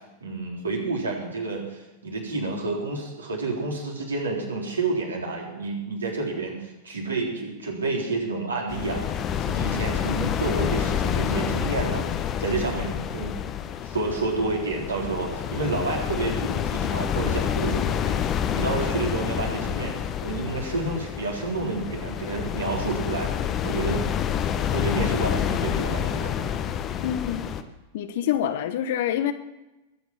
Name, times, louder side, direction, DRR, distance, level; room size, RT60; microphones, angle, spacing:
voice 1, 0.2-12.1 12.4-13.4 13.8-24.1 24.7-26.4, right 3 dB, 75° right, -1 dB, 3.7 m, -29 dB
sound 1, 8.7-27.6, left 9 dB, 30° left, 1.0 m, -28 dB
voice 2, 27.0-27.4 27.9-29.3, left 10 dB, 55° left, 11 dB, 1.1 m, -26 dB
20.5 x 8.4 x 6.0 m, 1.0 s
figure-of-eight pair, 90°, 0 cm